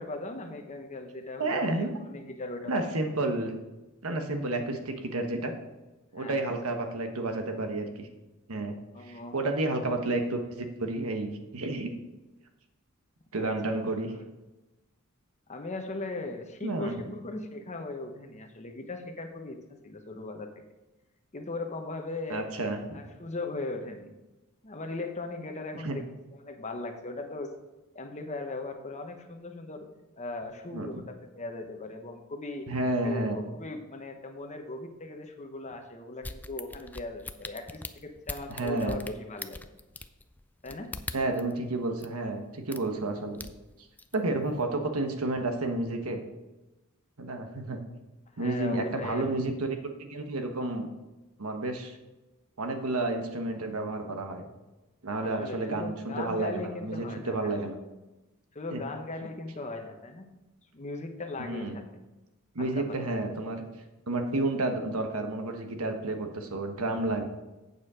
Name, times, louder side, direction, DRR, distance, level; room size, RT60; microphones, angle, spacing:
voice 1, 0.0-2.9 6.2-6.6 8.9-9.3 13.4-14.2 15.5-20.5 21.3-22.5 22.9-24.1 24.6-27.5 27.9-29.9 30.2-32.7 33.0-39.6 40.6-40.9 48.3-49.2 55.2-57.6 58.5-60.3 60.7-61.8 62.6-63.1, left 2 dB, 35° left, 5 dB, 1.0 m, -38 dB
voice 2, 1.4-1.9 2.7-3.5 4.0-5.5 6.1-8.1 8.5-8.8 9.0-11.9 13.3-14.1 16.6-17.0 22.3-23.0 25.8-26.0 30.7-31.0 32.7-33.4 38.5-39.0 41.1-43.4 44.1-46.2 47.2-47.8 48.4-50.9 51.4-52.0 52.6-54.5 55.0-57.8 58.7-58.8 61.4-61.8 62.5-63.6 64.1-67.3, right 2 dB, 85° right, 5 dB, 1.2 m, -31 dB
sound 1, 36.2-41.5 42.0-42.1 42.7-43.0 43.3-44.1 44.6-44.7, left 2 dB, 10° left, 0.3 m, -41 dB
8.4 x 7.1 x 5.0 m, 1.1 s
head